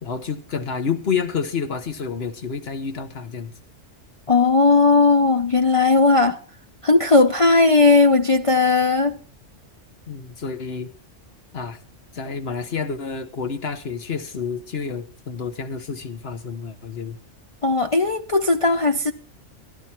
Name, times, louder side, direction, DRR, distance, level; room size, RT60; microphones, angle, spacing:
voice 1, 0.0-3.5 10.1-10.9 11.5-11.8 12.1-17.2, left 6 dB, 55° left, 1.3 m, -29 dB
voice 2, 4.3-6.4 6.8-9.2 17.6-19.1, left 3 dB, 40° left, 0.5 m, -17 dB
14.0 x 11.0 x 4.4 m
omnidirectional pair, 1.3 m